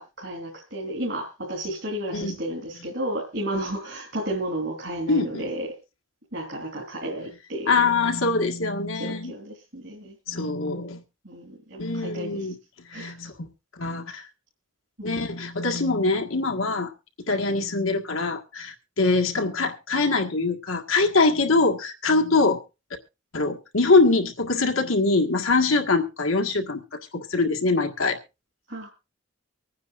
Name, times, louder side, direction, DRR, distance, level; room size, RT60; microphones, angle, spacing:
voice 1, 0.0-5.7 6.3-7.7 8.9-10.2 11.2-12.5 12.9-13.3 15.0-15.1 19.3-19.4 28.7-28.9, right 1 dB, 60° right, -1 dB, 3.1 m, -32 dB
voice 2, 5.1-5.5 7.7-9.3 10.3-11.0 11.8-12.6 12.9-13.5 13.8-14.3 15.0-16.9 17.3-22.6 23.3-28.2, left 3 dB, 90° left, 3 dB, 1.7 m, -23 dB
24.5 x 9.6 x 2.5 m, 0.27 s
head